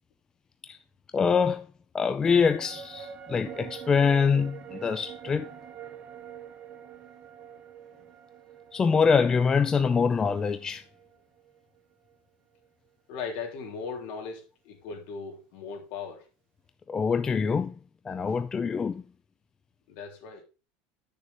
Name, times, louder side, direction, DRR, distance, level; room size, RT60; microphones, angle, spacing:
voice 1, 1.1-1.7 1.9-5.5 8.7-10.8 16.9-17.7 18.0-19.0, left 5 dB, 15° left, 0.4 m, -24 dB
ominous ambient, 2.3-11.8 12.1-12.2, right 8 dB, 30° right, 1.1 m, -45 dB
voice 2, 13.1-16.2 19.9-20.4, left 5 dB, 55° left, 3.4 m, -38 dB
10.5 x 6.8 x 4.2 m
cardioid pair, 165°, 4 cm